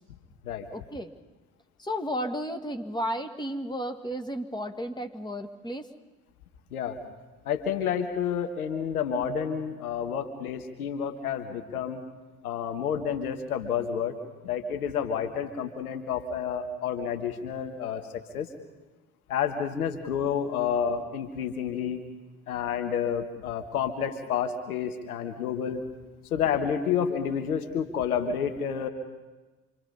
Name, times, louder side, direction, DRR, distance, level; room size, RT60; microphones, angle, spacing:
voice 1, 0.7-1.1 1.8-5.8, equal, 10° left, 5 dB, 1.9 m, -33 dB
voice 2, 7.4-12.0 12.4-14.1 14.4-18.0 18.3-18.5 19.3-22.0 22.5-25.8 26.3-28.9, left 7 dB, 80° left, 6 dB, 1.4 m, -29 dB
26.5 x 23.0 x 5.5 m, 1.2 s
figure-of-eight pair, 40°, 43 cm